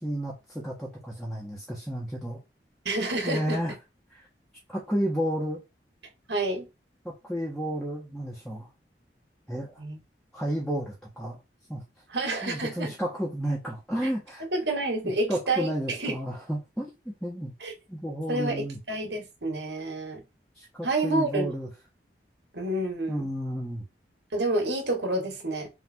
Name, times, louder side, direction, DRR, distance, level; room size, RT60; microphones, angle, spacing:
voice 1, 0.0-2.4 3.2-3.7 4.7-5.6 7.2-8.7 9.5-9.8 10.3-11.4 11.7-11.8 12.4-14.4 15.0-17.5 17.9-18.8 20.6-21.7 23.1-23.8, equal, 5° left, 1.5 m, -32 dB
voice 2, 2.8-3.6 6.3-6.7 9.8-10.0 12.1-12.9 14.5-16.2 17.6-17.7 18.3-20.2 20.8-21.5 22.5-23.3 24.3-25.7, right 2 dB, 80° right, 2.3 m, -29 dB
6.0 x 3.4 x 4.7 m
head